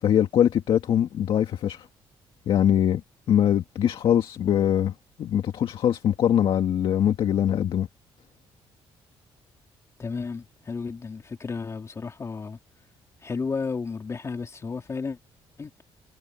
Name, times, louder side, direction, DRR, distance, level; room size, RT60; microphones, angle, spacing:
voice 1, 0.0-1.9 2.5-3.0 3.3-4.9 5.2-7.9, left 10 dB, 60° left, 1.9 m, -22 dB
voice 2, 10.0-12.6 13.2-15.2 15.6-15.7, left 4 dB, 30° left, 3.4 m, -32 dB
cardioid pair, 130°, 10 cm